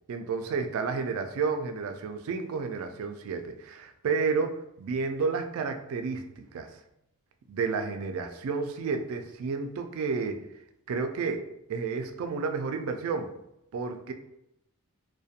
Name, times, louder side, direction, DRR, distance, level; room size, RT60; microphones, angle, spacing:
voice 1, 0.1-6.7 7.5-10.4 10.9-11.4 11.7-13.3 13.7-14.1, right 5 dB, 65° right, 7 dB, 0.3 m, -31 dB
2.7 x 2.1 x 2.4 m, 0.83 s
head